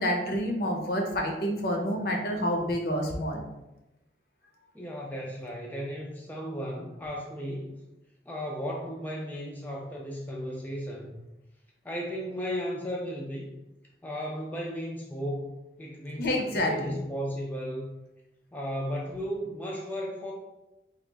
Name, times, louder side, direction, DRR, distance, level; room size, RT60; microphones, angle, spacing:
voice 1, 0.0-3.4 16.2-17.0, equal, 60° left, 1 dB, 0.6 m, -28 dB
voice 2, 4.7-7.8 8.3-11.2 11.8-13.5 14.0-17.9 18.5-20.3, equal, 10° left, -2 dB, 0.3 m, -35 dB
3.1 x 2.4 x 3.3 m, 0.98 s
head